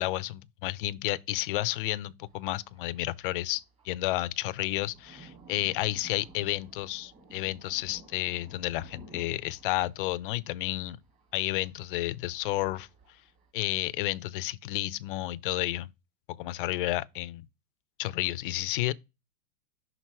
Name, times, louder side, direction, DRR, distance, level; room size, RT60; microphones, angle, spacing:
voice 1, 0.0-11.0 11.3-12.9 13.5-15.9 16.3-17.4 18.0-18.9, left 16 dB, 45° left, 0.5 m, -31 dB
Thunder, 2.2-13.5, right 4 dB, 15° right, 2.0 m, -56 dB
5.9 x 3.9 x 4.4 m
hypercardioid pair, 120°, 39 cm